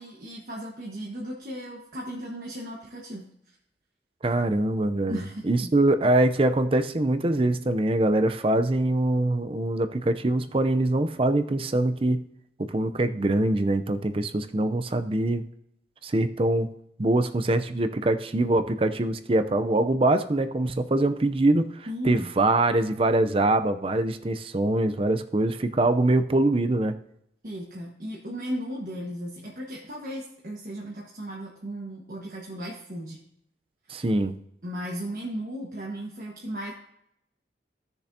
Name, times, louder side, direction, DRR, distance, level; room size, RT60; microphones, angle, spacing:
voice 1, 0.0-3.2 5.1-5.7 21.9-22.3 27.4-33.2 33.9-34.0 34.6-36.7, equal, 50° right, -3 dB, 1.4 m, -36 dB
voice 2, 4.2-12.2 12.6-15.4 16.0-16.7 17.0-26.9 33.9-34.4, right 2 dB, 30° right, 10 dB, 0.5 m, -23 dB
16.0 x 6.8 x 2.7 m, 0.76 s
head